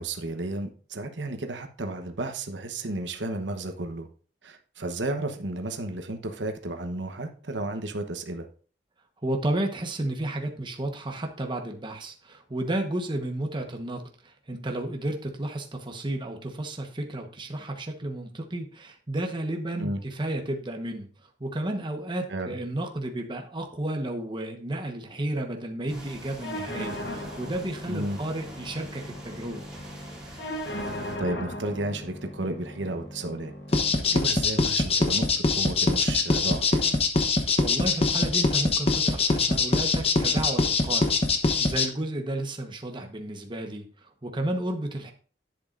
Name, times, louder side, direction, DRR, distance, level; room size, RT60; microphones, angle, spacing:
voice 1, 0.0-4.1 4.4-8.5 19.8-20.0 22.3-22.6 27.9-28.2 31.2-33.5 34.1-37.0, right 2 dB, 90° right, 6 dB, 1.1 m, -33 dB
voice 2, 9.2-29.6 37.6-45.1, right 1 dB, 25° right, 3 dB, 1.2 m, -32 dB
sound 1, 25.9-31.2, right 1 dB, 5° right, 2.9 m, -45 dB
sound 2, 26.4-34.4, equal, 70° left, 1.1 m, -38 dB
sound 3, 33.7-41.9, left 3 dB, 35° left, 1.0 m, -23 dB
10.5 x 7.9 x 2.6 m, 0.42 s
head